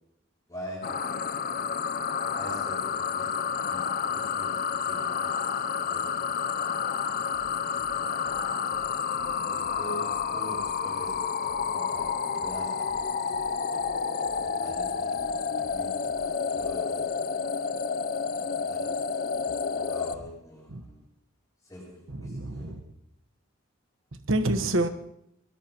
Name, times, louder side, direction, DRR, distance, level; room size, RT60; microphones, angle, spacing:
voice 1, 0.5-1.0 2.4-5.6 5.9-6.4 6.7-7.2 7.9-8.5 9.0-13.5 14.4-17.3 18.4-19.0 19.8-21.0 21.6-22.8, equal, 15° left, 7.9 m, -45 dB
sound 1, 0.8-20.1, left 6 dB, 45° left, 0.5 m, -30 dB
sound 2, 7.0-17.0, equal, 35° right, 1.7 m, -54 dB
voice 2, 19.4-19.9 20.7-20.9 22.1-22.9 24.1-24.9, right 1 dB, 75° right, 1.2 m, -29 dB
23.5 x 19.5 x 3.0 m
head